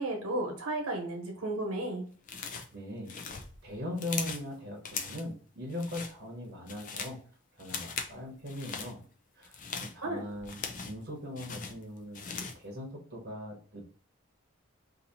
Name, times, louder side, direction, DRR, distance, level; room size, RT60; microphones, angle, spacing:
voice 1, 0.0-2.0 10.0-10.2, right 2 dB, 85° right, 2 dB, 1.2 m, -33 dB
sound 1, 2.3-2.8 3.1-4.5 4.8-5.3 5.7-6.1 6.5-7.2 7.6-8.1 8.5-8.9 9.4-11.0 11.4-12.6, left 5 dB, 35° left, 0.4 m, -39 dB
voice 2, 2.7-3.2 3.6-7.3 7.6-9.0 9.4-13.8, left 1 dB, 45° right, -1 dB, 1.0 m, -40 dB
2.8 x 2.8 x 3.9 m, 0.44 s
head